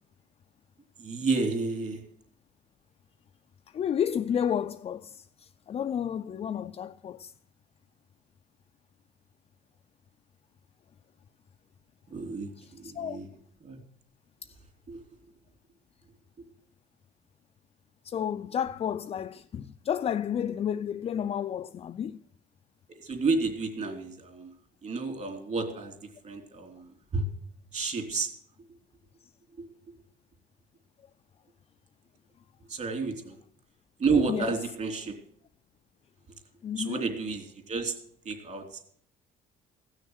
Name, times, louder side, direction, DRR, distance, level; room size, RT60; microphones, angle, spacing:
voice 1, 1.0-2.0 12.1-13.3 13.6-13.8 14.9-15.0 22.9-24.5 24.8-26.0 26.2-27.2 27.7-28.3 29.5-29.7 32.7-33.4 34.0-35.1 36.7-37.9 38.2-38.8, right 4 dB, 40° right, 3.1 m, -31 dB
voice 2, 3.7-7.3 12.6-13.2 18.0-22.2 34.3-34.6 36.6-37.0, left 8 dB, 35° left, 0.4 m, -31 dB
16.0 x 6.4 x 7.9 m
cardioid pair, 110°, 17 cm